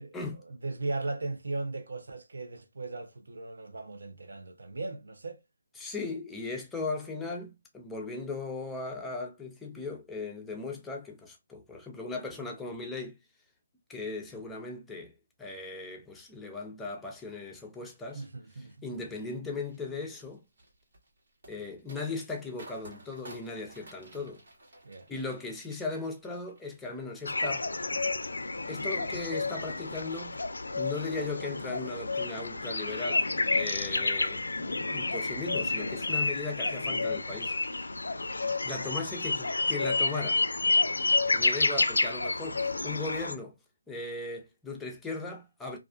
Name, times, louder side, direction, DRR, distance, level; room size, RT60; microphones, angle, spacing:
voice 1, 0.0-5.4 18.1-18.8 24.8-25.1 34.3-34.8 41.2-41.5, right 2 dB, 75° right, 0.5 m, -38 dB
voice 2, 5.8-13.2 13.9-15.1 15.4-18.3 18.6-20.4 21.5-24.4 25.1-27.7 28.7-30.4 30.8-33.3 33.5-37.5 38.6-40.4 41.3-43.5 43.9-45.8, left 3 dB, 5° left, 0.4 m, -37 dB
sound 1, 19.7-27.9 28.2-28.9 29.3-29.5, right 1 dB, 60° right, 1.3 m, -54 dB
sound 2, 27.3-43.3, left 3 dB, 85° left, 0.3 m, -30 dB
2.4 x 2.3 x 2.4 m
figure-of-eight pair, 155°, 0 cm